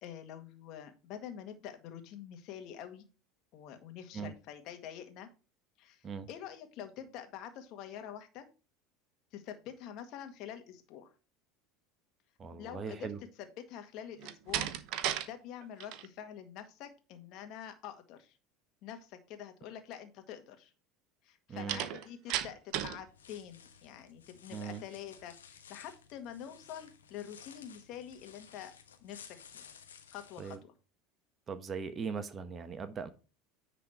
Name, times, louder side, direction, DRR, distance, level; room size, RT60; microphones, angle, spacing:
voice 1, 0.0-3.1 3.5-5.3 5.8-8.5 9.3-11.1 12.5-13.1 13.7-14.7 15.3-18.4 18.8-20.7 21.2-28.7 29.0-29.6 30.1-30.7, left 9 dB, 55° left, 7 dB, 1.8 m, -46 dB
voice 2, 12.4-13.2 21.5-21.8 24.5-24.8 30.4-30.6 31.5-33.1, right 6 dB, 35° right, 10 dB, 1.0 m, -39 dB
Slam, 14.2-15.3 15.6-16.1 21.7-23.0, right 11 dB, 60° right, 0.9 m, -35 dB
sound 1, 23.1-30.6, left 7 dB, 90° left, 1.1 m, -56 dB
9.9 x 4.1 x 4.5 m, 0.33 s
hypercardioid pair, 80°, 0 cm